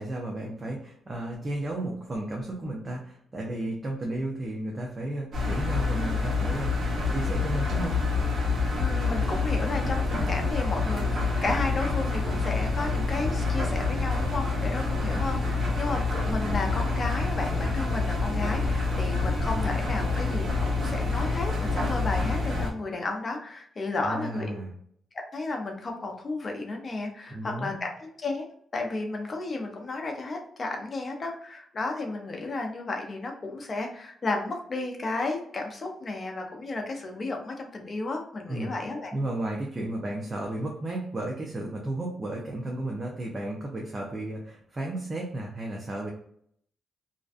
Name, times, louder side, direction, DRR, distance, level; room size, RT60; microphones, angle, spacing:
voice 1, 0.0-8.0 24.0-24.7 27.3-27.9 38.5-38.7 39.1-46.1, right 1 dB, 25° right, -1 dB, 0.5 m, -33 dB
Engine, 5.3-22.7, left 3 dB, 55° right, 0.9 m, -27 dB
voice 2, 8.8-24.6 25.3-28.5 28.7-39.1, left 3 dB, 35° left, 2 dB, 0.6 m, -33 dB
2.5 x 2.2 x 2.3 m, 0.65 s
cardioid pair, 115°, 0 cm